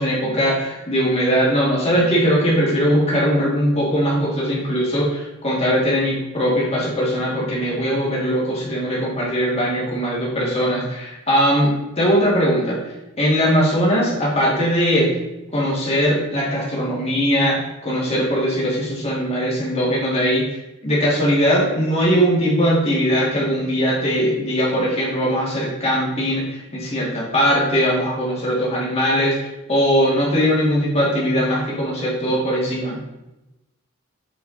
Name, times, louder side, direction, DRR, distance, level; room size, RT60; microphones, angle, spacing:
voice 1, 0.0-12.8 13.2-15.1 15.5-20.6 20.8-33.0, equal, 30° left, -5 dB, 2.4 m, -20 dB
8.2 x 4.9 x 4.1 m, 0.97 s
head